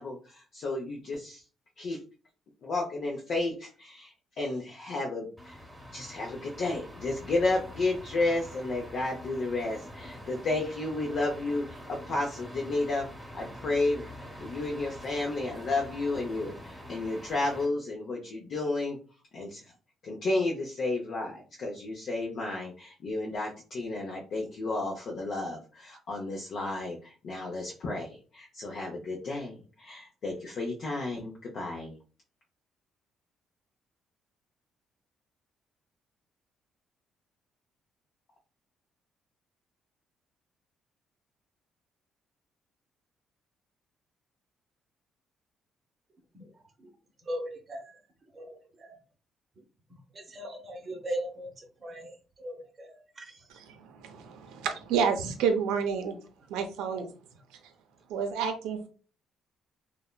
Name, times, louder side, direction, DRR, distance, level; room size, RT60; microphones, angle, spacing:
voice 1, 0.0-1.4 1.8-2.0 2.6-5.6 5.9-13.1 13.3-19.0 19.3-19.7 20.0-32.0, left 2 dB, 60° left, 0 dB, 0.5 m, -32 dB
sound 1, 5.4-17.7, equal, ahead, 1.0 m, -45 dB
voice 2, 46.3-46.9 47.3-48.0 48.3-49.0 50.1-52.1 52.4-53.5, right 1 dB, 40° right, 3 dB, 0.7 m, -39 dB
voice 3, 53.5-56.2 56.5-57.1 58.1-58.9, right 6 dB, 85° right, 6 dB, 0.5 m, -30 dB
3.1 x 2.0 x 2.2 m, 0.36 s
supercardioid pair, 75°, 0 cm